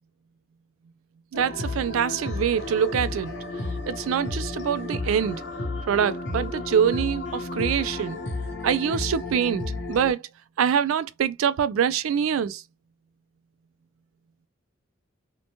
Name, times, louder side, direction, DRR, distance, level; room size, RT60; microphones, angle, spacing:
sound 1, 1.3-10.1, left 2 dB, 60° left, 0.7 m, -32 dB
voice 1, 1.3-3.3 3.9-5.4 5.9-8.2 8.6-10.2 10.6-12.6, right 8 dB, 90° right, 0.3 m, -24 dB
2.9 x 2.1 x 2.7 m
head